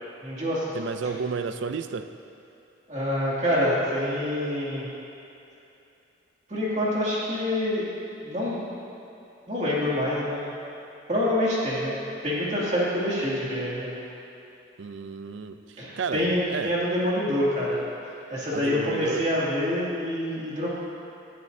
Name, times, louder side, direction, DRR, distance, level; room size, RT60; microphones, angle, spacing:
voice 1, 0.2-0.7 2.9-4.9 6.5-7.9 8.2-8.8 9.5-10.5 11.1-12.0 12.2-14.0 15.8-17.8 18.3-20.8, left 1 dB, 35° right, -7 dB, 2.4 m, -26 dB
voice 2, 0.7-2.1 14.8-16.7 18.5-19.2, right 5 dB, 70° right, 10 dB, 0.5 m, -32 dB
18.5 x 9.6 x 2.7 m, 2.7 s
head